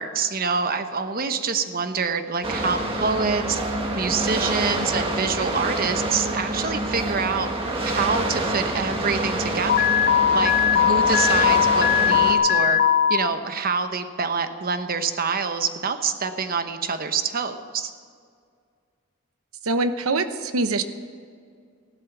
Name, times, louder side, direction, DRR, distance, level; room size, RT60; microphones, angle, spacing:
voice 1, 0.0-3.6 3.9-7.5 7.8-10.0 10.3-12.8 13.1-17.9, right 5 dB, 45° right, 9 dB, 1.0 m, -26 dB
sound 1, 2.4-12.3, right 1 dB, 25° right, 1.6 m, -27 dB
Alarm, 9.7-13.2, left 9 dB, 45° left, 0.6 m, -19 dB
voice 2, 19.6-20.8, right 3 dB, 90° right, 10 dB, 0.9 m, -23 dB
15.0 x 12.0 x 6.1 m, 2.1 s
head